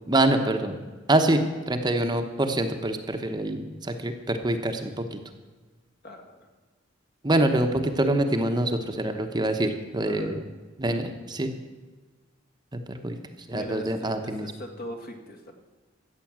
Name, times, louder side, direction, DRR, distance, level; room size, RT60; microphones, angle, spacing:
voice 1, 0.1-0.8 1.1-5.2 7.2-10.3 10.8-11.5 12.9-13.2 13.5-14.5, right 1 dB, 20° right, 6 dB, 0.9 m, -25 dB
voice 2, 6.0-6.5 10.1-10.4 13.5-15.5, equal, 50° left, 4 dB, 1.8 m, -40 dB
14.0 x 8.4 x 7.4 m, 1.3 s
head